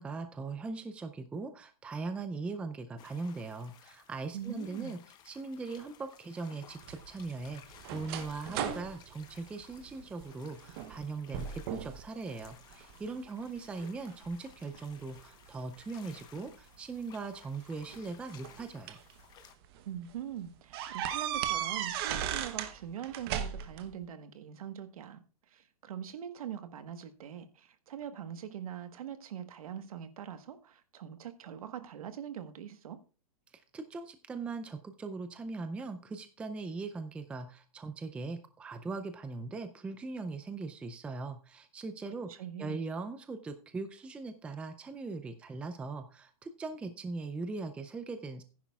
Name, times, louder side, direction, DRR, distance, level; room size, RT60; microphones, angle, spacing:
voice 1, 0.0-5.0 5.3-19.0 33.7-48.4, right 3 dB, 5° right, 0.4 m, -40 dB
sound 1, 3.0-19.5, left 10 dB, 20° left, 1.0 m, -58 dB
voice 2, 4.3-5.0 19.8-33.0 42.3-42.9, right 9 dB, 70° right, 1.4 m, -43 dB
sound 2, 6.8-10.3 10.7-11.0 11.3-12.0 12.4-13.2 13.8-15.2 16.4-16.5 17.7-19.1 19.6-19.8 20.1-20.2 20.7-22.7 23.0-23.9, right 10 dB, 40° right, 0.9 m, -36 dB
15.0 x 10.0 x 2.4 m
hypercardioid pair, 150°, 19 cm